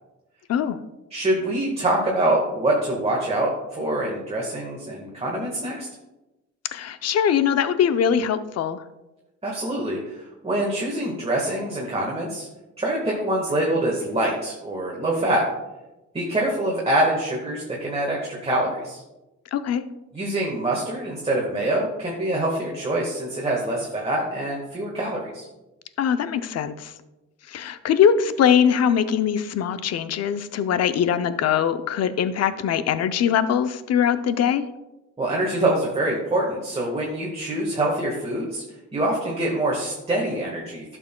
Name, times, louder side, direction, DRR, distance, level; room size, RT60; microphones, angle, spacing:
voice 1, 1.1-5.9 9.4-12.5 12.8-15.4 16.1-18.2 18.4-19.0 20.1-25.5 35.2-38.6 38.9-41.0, right 1 dB, 20° right, -3 dB, 1.5 m, -25 dB
voice 2, 6.7-8.8 19.5-19.8 26.0-26.9 27.5-34.6, left 8 dB, 55° left, 12 dB, 0.6 m, -22 dB
11.5 x 6.3 x 2.2 m, 1.0 s
cardioid pair, 90°, 30 cm